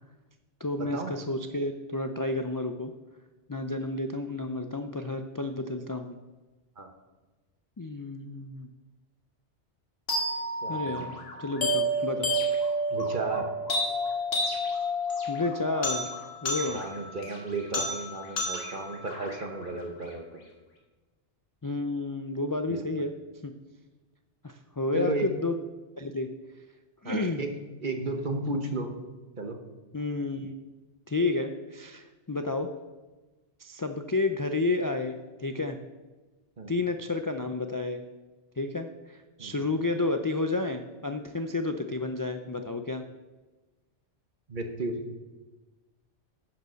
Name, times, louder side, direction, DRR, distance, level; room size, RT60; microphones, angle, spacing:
voice 1, 0.6-2.9 3.5-6.2 7.8-8.7 10.7-12.3 15.3-16.1 16.4-16.8 21.6-23.1 23.4-23.5 24.4-25.6 26.0-26.3 27.0-27.4 29.9-30.6 31.1-32.7 33.6-35.8 36.7-38.0 38.6-43.0, left 2 dB, 30° left, 6 dB, 0.3 m, -31 dB
sound 1, 10.1-20.1, equal, 60° left, 2.2 m, -31 dB
voice 2, 10.6-11.1 12.9-13.5 16.7-20.4 22.7-22.8 24.9-25.3 27.0-27.5 27.8-28.9 29.4-29.6 36.6-36.7 39.4-39.6 44.5-45.0, right 3 dB, 45° right, 5 dB, 1.3 m, -33 dB
10.0 x 6.9 x 6.4 m, 1.2 s
omnidirectional pair, 1.2 m